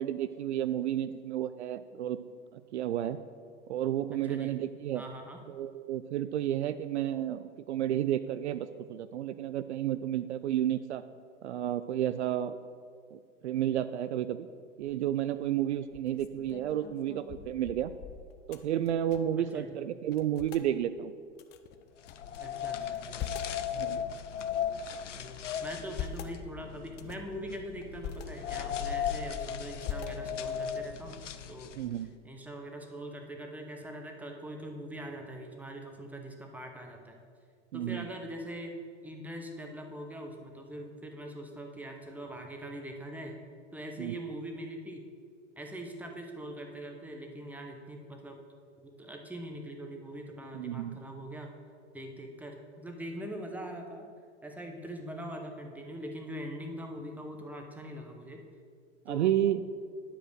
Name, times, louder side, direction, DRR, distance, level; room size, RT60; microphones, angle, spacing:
voice 1, 0.0-2.2 2.5-3.2 3.7-5.0 5.5-11.0 11.4-12.5 13.1-14.5 14.8-17.9 18.5-21.1 23.7-24.0 31.8-32.1 37.7-38.1 44.0-44.2 50.5-51.0 59.1-59.6, right 11 dB, 65° right, 13 dB, 0.5 m, -31 dB
voice 2, 4.9-5.4 19.5-19.7 22.4-23.5 25.1-31.2 31.5-31.8 32.2-37.2 37.7-43.4 43.7-45.1 45.6-48.4 48.8-51.5 51.9-54.1 54.4-58.4 59.1-59.3, right 1 dB, 5° right, 3 dB, 1.0 m, -42 dB
sound 1, 14.8-15.2 15.7-19.5 19.7-19.8 20.1-20.7 21.4-22.4 22.8-23.6 24.2-25.1 25.6-26.4 26.9-27.3 27.8-28.3 28.7-29.4 29.8-30.6, left 9 dB, 30° left, 0.6 m, -43 dB
sound 2, 22.0-32.0, left 8 dB, 80° left, 0.6 m, -37 dB
10.0 x 5.0 x 6.3 m, 2.1 s
figure-of-eight pair, 95°, 36 cm